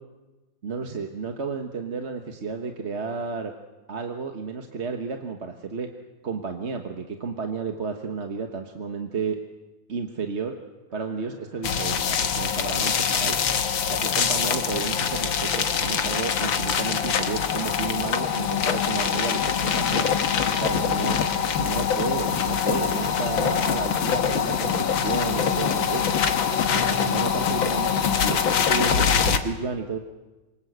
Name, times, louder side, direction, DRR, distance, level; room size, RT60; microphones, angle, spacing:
voice 1, 0.6-3.5 3.9-5.9 6.2-9.4 9.9-10.6 10.9-13.4 13.9-20.1 20.6-21.2 21.6-26.1 26.7-30.0, right 5 dB, 40° right, 4 dB, 1.5 m, -32 dB
sound 1, 10.9-26.9, right 2 dB, 60° right, 6.8 m, -48 dB
sound 2, 11.6-29.4, left 7 dB, 80° left, 2.2 m, -24 dB
27.5 x 24.5 x 8.1 m, 1.2 s
omnidirectional pair, 2.1 m